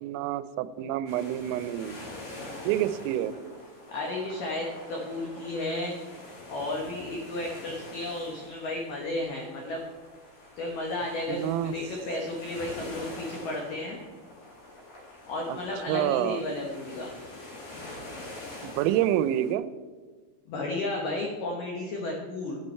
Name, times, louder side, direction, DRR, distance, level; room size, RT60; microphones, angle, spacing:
voice 1, 0.0-2.0 2.7-3.3 11.3-11.7 15.5-15.6 15.9-16.4 18.6-19.6, right 12 dB, 85° right, 14 dB, 3.2 m, -27 dB
sound 1, 1.1-19.5, left 2 dB, 45° left, 3.3 m, -45 dB
voice 2, 3.9-6.0 6.5-9.8 10.6-14.0 15.3-17.1 20.5-22.6, left 2 dB, 80° left, 0 dB, 1.9 m, -33 dB
11.0 x 11.0 x 4.4 m, 1.4 s
omnidirectional pair, 5.8 m